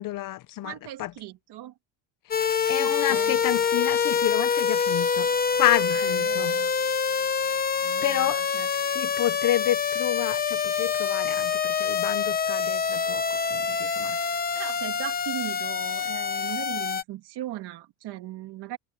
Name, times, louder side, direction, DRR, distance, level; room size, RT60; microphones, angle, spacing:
voice 1, 0.0-0.7 1.0-1.1 2.7-5.3 5.6-6.6 8.0-8.4 8.7-13.2 13.5-14.2, left 14 dB, 50° left, 0.7 m, -29 dB
voice 2, 0.6-1.7 2.8-3.4 5.9-6.8 7.8-8.7 14.5-18.8, right 14 dB, 60° right, 2.6 m, -38 dB
sound 1, 2.3-17.0, left 6 dB, 20° left, 1.0 m, -26 dB
cardioid pair, 155°, 44 cm